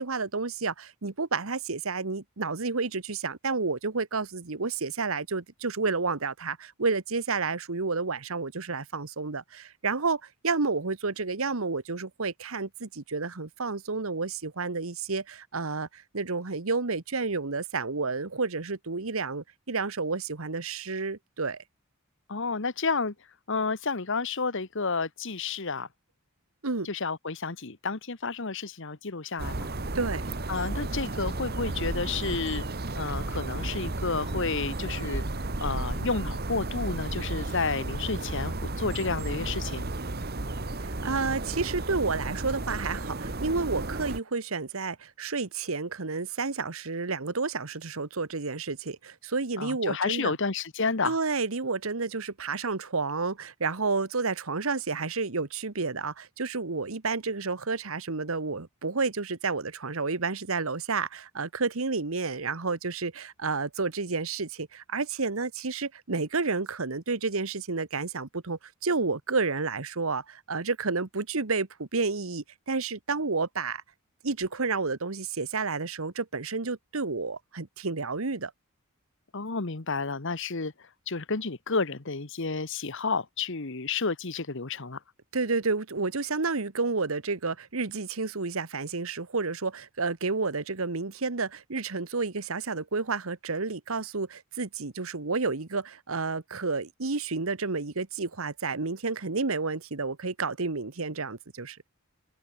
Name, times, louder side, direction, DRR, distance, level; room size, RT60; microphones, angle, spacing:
voice 1, 0.0-21.6 26.6-26.9 29.9-30.2 40.8-50.4 51.0-73.8 74.2-78.5 85.3-101.8, right 4 dB, 70° right, 1.3 m, -30 dB
voice 2, 22.3-23.1 23.5-25.9 26.8-29.7 30.5-32.6 32.9-35.2 35.6-39.9 49.6-51.2 79.3-80.7 81.1-85.0, left 4 dB, 60° left, 1.4 m, -31 dB
sound 1, 29.4-44.2, right 2 dB, 45° right, 1.7 m, -33 dB
open air
head